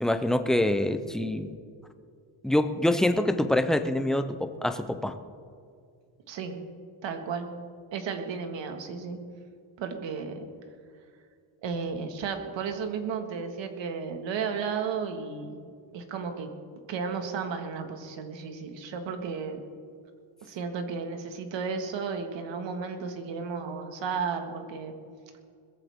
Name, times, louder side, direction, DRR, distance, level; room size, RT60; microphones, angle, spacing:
voice 1, 0.0-1.5 2.4-5.1, left 1 dB, ahead, 8 dB, 0.3 m, -25 dB
voice 2, 6.3-6.6 7.0-7.5 7.9-9.2 9.8-10.5 11.6-15.5 15.9-16.5 16.9-19.6 20.4-24.9, right 5 dB, 70° right, 5 dB, 1.8 m, -33 dB
21.5 x 14.0 x 3.6 m, 2.3 s
cardioid pair, 170°, 46 cm